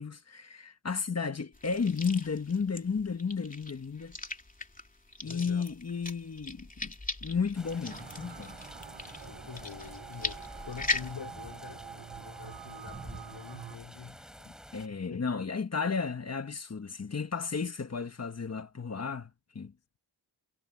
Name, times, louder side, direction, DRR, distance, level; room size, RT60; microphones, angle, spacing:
voice 1, 0.0-4.2 5.2-6.9 7.2-8.5 14.7-19.7, left 5 dB, 35° left, 1.5 m, -33 dB
sound 1, 1.5-11.1, left 3 dB, 20° left, 3.0 m, -39 dB
voice 2, 5.2-5.7 9.2-14.2 14.9-15.2, left 7 dB, 80° left, 3.8 m, -46 dB
sound 2, 7.5-14.9, equal, ahead, 6.5 m, -49 dB
sound 3, 7.8-13.8, right 8 dB, 70° right, 1.3 m, -47 dB
wide cardioid pair, 90°, 42 cm